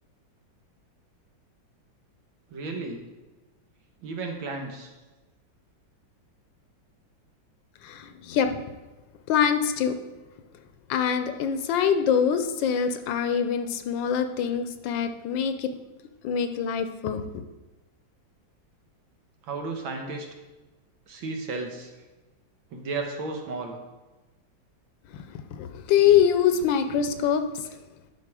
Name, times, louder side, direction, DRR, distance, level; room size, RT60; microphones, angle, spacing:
voice 1, 2.5-3.0 4.0-4.9 19.5-20.3 21.1-21.9 22.7-23.8, right 3 dB, 90° right, 3 dB, 1.9 m, -33 dB
voice 2, 7.8-8.6 9.3-10.0 10.9-15.7 16.2-17.4 25.5-27.6, left 8 dB, 80° left, 8 dB, 1.3 m, -24 dB
11.0 x 4.7 x 4.7 m, 1.1 s
omnidirectional pair, 2.1 m